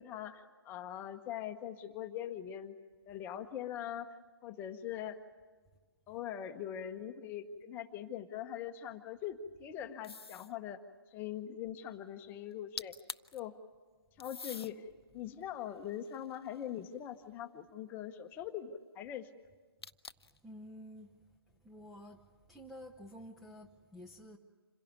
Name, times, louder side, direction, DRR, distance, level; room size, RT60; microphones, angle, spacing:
voice 1, 0.0-2.7 3.1-4.1 4.4-5.2 6.1-10.8 11.1-12.9 13.3-13.5 14.2-14.9 15.1-19.3, left 10 dB, 15° left, 1.0 m, -42 dB
sound 1, 10.0-10.6 12.5-12.6 12.8-13.4 14.2-14.7 15.4-16.9 19.8-20.4, left 4 dB, 85° left, 0.7 m, -46 dB
voice 2, 20.4-21.1 21.6-22.2 22.5-24.4, equal, ahead, 0.6 m, -50 dB
27.0 x 17.0 x 9.5 m
figure-of-eight pair, 145°, 13 cm